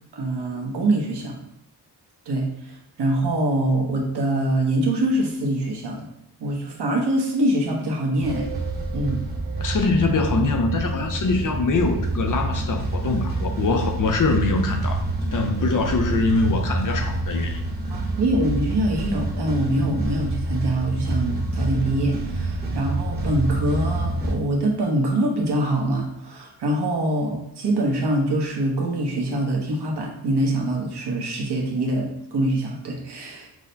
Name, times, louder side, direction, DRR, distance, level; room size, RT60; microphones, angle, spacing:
voice 1, 0.1-1.3 2.3-2.7 3.0-6.1 6.4-8.5 8.9-9.2 17.9-33.5, right 1 dB, 80° right, -1 dB, 1.0 m, -24 dB
sound 1, 8.2-24.3, right 2 dB, 25° right, 0.9 m, -27 dB
voice 2, 9.6-15.0 15.3-17.6, left 3 dB, 50° left, 5 dB, 0.5 m, -23 dB
6.1 x 2.1 x 3.9 m, 0.75 s
wide cardioid pair, 115°, 40 cm